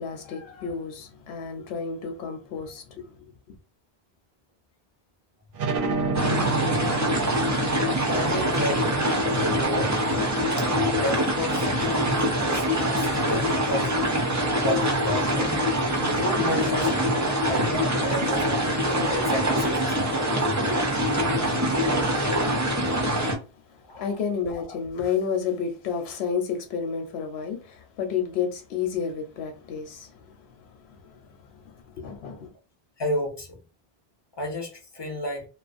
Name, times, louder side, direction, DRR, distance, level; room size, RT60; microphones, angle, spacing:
voice 1, 0.0-3.1 23.9-30.3 30.6-31.4 31.7-32.5, left 6 dB, 85° left, 0.9 m, -31 dB
sound 1, 5.5-10.8, right 4 dB, 65° right, 0.7 m, -31 dB
sound 2, 6.1-23.4, equal, 30° right, 0.3 m, -24 dB
voice 2, 8.1-9.9 10.6-10.7 11.0-13.9 14.5-15.7 16.1-16.9 17.5-20.0 23.9-24.0 33.0-33.6 34.4-35.5, left 1 dB, 30° left, 0.5 m, -32 dB
2.4 x 2.0 x 2.4 m
omnidirectional pair, 1.0 m